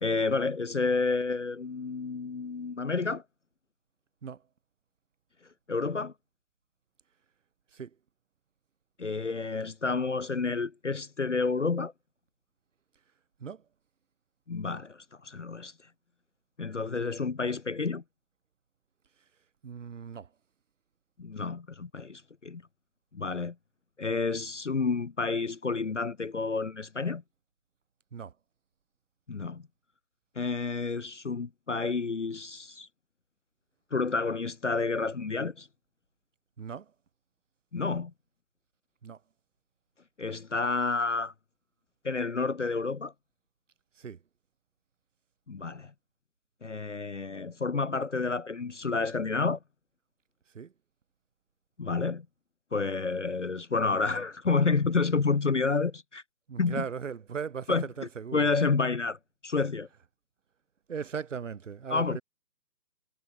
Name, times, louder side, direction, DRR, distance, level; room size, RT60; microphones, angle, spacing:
voice 1, 0.0-3.2 5.7-6.1 9.0-11.9 14.5-15.7 16.6-18.0 21.2-22.6 23.1-23.6 24.0-27.2 29.3-29.6 30.4-32.9 33.9-35.7 37.7-38.1 40.2-41.3 42.0-43.1 45.5-45.9 46.6-49.6 51.8-52.3 52.7-56.2 56.6-56.8 57.7-57.8 58.3-59.2 59.4-59.9 61.9-62.2, left 4 dB, 50° left, 0.4 m, -29 dB
voice 2, 19.6-20.3 28.1-28.3 36.6-36.9 39.0-39.2 44.0-44.2 50.5-50.7 56.5-58.5 60.9-62.2, right 6 dB, 45° right, 6.1 m, -38 dB
hypercardioid pair, 170°, 50 cm